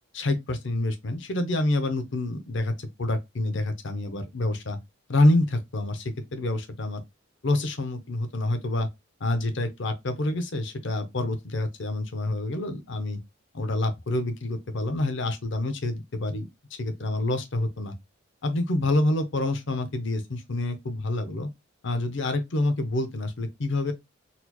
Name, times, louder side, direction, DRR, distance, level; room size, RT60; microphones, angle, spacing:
voice 1, 0.1-4.8 5.1-7.0 7.4-8.9 9.2-13.2 13.5-16.5 16.8-17.9 18.4-21.5 21.8-23.9, left 2 dB, 65° left, 0.7 m, -27 dB
4.1 x 2.9 x 2.3 m
head